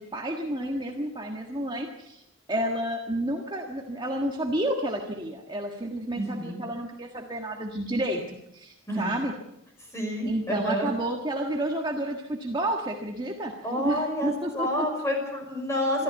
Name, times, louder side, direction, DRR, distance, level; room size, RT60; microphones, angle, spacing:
voice 1, 0.0-2.2 2.5-9.3 10.2-13.5 13.8-14.9, right 1 dB, 20° right, 1 dB, 1.5 m, -30 dB
voice 2, 6.2-6.6 8.9-9.1 9.9-10.9 13.6-16.0, equal, 15° left, 2 dB, 5.8 m, -29 dB
24.0 x 14.0 x 8.2 m, 0.85 s
head